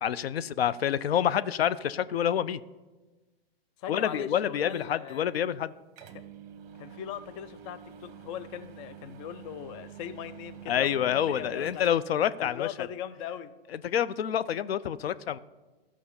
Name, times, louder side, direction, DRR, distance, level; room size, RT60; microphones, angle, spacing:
voice 1, 0.0-2.6 3.9-5.7 10.7-12.7 13.8-15.4, left 9 dB, 80° left, 16 dB, 0.6 m, -27 dB
voice 2, 3.8-5.3 6.8-12.0 12.4-13.5, left 10 dB, 30° left, 14 dB, 0.5 m, -39 dB
sound 1, 4.0-4.3 4.7-5.3 5.6-5.7 6.0-12.2, right 9 dB, 35° right, 1.2 m, -48 dB
13.5 x 6.2 x 6.9 m, 1.2 s
hypercardioid pair, 130°, 30 cm